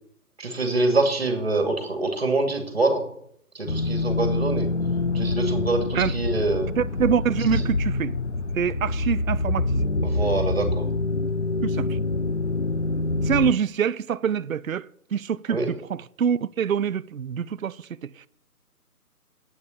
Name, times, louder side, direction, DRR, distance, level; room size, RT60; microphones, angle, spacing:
voice 1, 0.4-3.0 3.5-4.7 5.1-6.7 7.6-7.7 10.0-10.9 15.5-15.7, right 2 dB, 40° right, 2.6 m, -25 dB
sound 1, 3.7-13.5, left 2 dB, 50° left, 0.5 m, -26 dB
voice 2, 6.8-8.1 8.5-9.9 11.6-12.0 13.2-18.3, right 8 dB, 60° right, 0.5 m, -25 dB
8.7 x 6.9 x 8.7 m
figure-of-eight pair, 175°, 46 cm